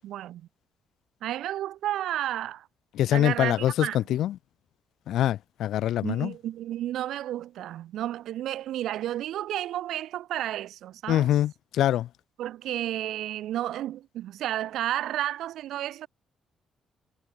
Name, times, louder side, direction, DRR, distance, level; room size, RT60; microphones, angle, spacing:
voice 1, 0.0-0.5 1.2-2.7 3.1-4.2 6.0-11.3 12.4-16.1, right 12 dB, 80° right, 2.1 m, -32 dB
voice 2, 3.0-4.4 5.1-6.3 11.1-12.1, left 12 dB, 80° left, 0.3 m, -24 dB
cardioid pair, 90°, 0 cm